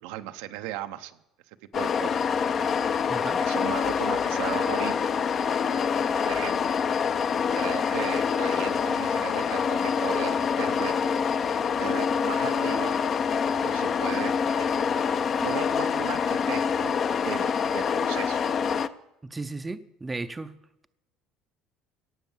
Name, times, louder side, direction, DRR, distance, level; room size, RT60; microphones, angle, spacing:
voice 1, 0.0-1.2 1.7-2.2 3.4-5.1 6.2-6.6 7.5-11.0 11.6-12.9 13.5-14.3 15.0-15.1 15.4-18.4, right 14 dB, 90° right, 0.8 m, -37 dB
sound 1, 1.7-18.9, left 6 dB, 35° left, 0.5 m, -26 dB
voice 2, 3.1-3.5 19.2-20.6, right 3 dB, 15° right, 0.5 m, -35 dB
17.5 x 7.0 x 7.2 m
cardioid pair, 145°, 0 cm